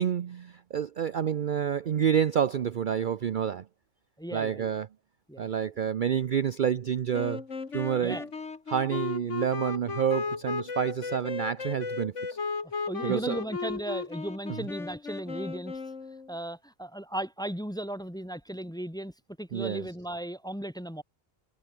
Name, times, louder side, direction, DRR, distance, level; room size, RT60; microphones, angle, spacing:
voice 1, 0.0-3.6 4.3-4.9 5.4-7.4 7.7-8.2 8.7-12.4 13.0-13.4 19.5-19.9, right 8 dB, 50° right, 0.7 m, -28 dB
voice 2, 4.2-4.7 5.3-5.5 8.0-8.3 8.8-9.0 12.9-15.8 16.3-19.1 19.4-21.0, right 1 dB, 5° left, 1.1 m, -36 dB
sound 1, 7.1-16.3, left 4 dB, 90° left, 2.6 m, -35 dB
omnidirectional pair, 1.2 m